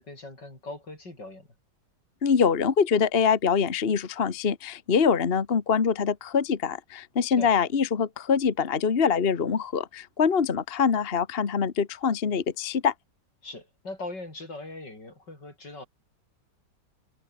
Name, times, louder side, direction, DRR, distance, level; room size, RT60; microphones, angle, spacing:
voice 1, 0.0-1.5 7.4-7.6 13.4-15.9, left 2 dB, 85° left, 8.0 m, -40 dB
voice 2, 2.2-12.9, left 6 dB, 35° left, 1.4 m, -24 dB
omnidirectional pair, 1.8 m